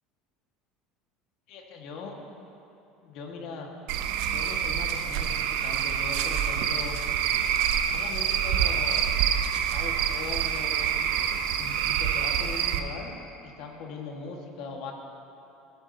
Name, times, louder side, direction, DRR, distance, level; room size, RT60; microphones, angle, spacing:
voice 1, 1.5-2.2 3.0-3.7 4.3-7.0 7.8-9.1 9.5-11.2 11.6-13.1 13.4-14.9, left 4 dB, 60° left, 1 dB, 1.4 m, -40 dB
Cricket / Frog, 3.9-12.8, right 9 dB, 75° right, 0.6 m, -26 dB
16.5 x 8.2 x 2.7 m, 3.0 s
cardioid pair, 145°, 0 cm